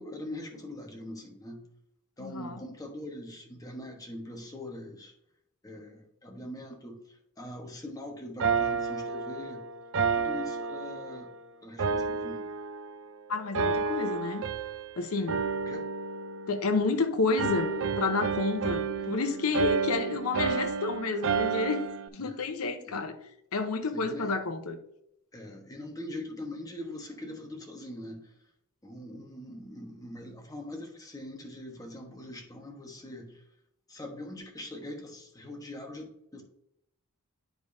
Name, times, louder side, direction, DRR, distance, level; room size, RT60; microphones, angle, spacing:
voice 1, 0.0-1.6 2.2-5.1 5.6-9.6 10.1-11.3 11.6-12.4 15.6-15.9 19.6-19.7 22.2-22.4 22.9-23.0 23.9-24.3 25.3-28.3 28.8-33.4 33.9-36.4, left 1 dB, 15° left, 1.1 m, -42 dB
voice 2, 2.2-2.6 13.3-14.4 15.0-15.5 16.5-21.9 22.1-23.2 23.5-24.8, left 3 dB, 70° left, 0.8 m, -30 dB
sound 1, 8.4-11.3 11.8-13.1 13.5-14.9 15.3-17.0 17.4-22.1, right 5 dB, 60° right, 0.5 m, -31 dB
9.2 x 5.0 x 2.6 m
head